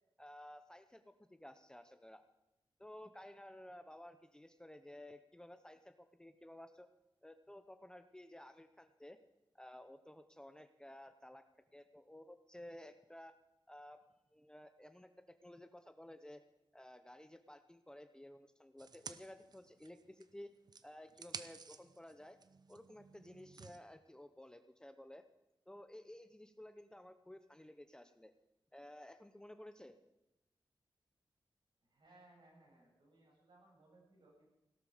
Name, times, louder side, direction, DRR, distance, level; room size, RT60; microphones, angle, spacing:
voice 1, 0.2-2.2 2.8-6.9 7.2-9.2 9.5-11.4 11.7-13.4 13.7-14.1 14.3-16.4 16.7-20.5 20.8-22.4 22.7-25.2 25.7-28.3 28.7-30.0, left 1 dB, 10° left, 9 dB, 0.7 m, -55 dB
sound 1, 18.8-20.3 20.7-23.8, right 5 dB, 50° right, 0.7 m, -53 dB
voice 2, 31.8-34.5, right 2 dB, 70° right, -2 dB, 7.1 m, -65 dB
17.0 x 12.5 x 5.0 m, 0.96 s
wide cardioid pair, 140°, 9 cm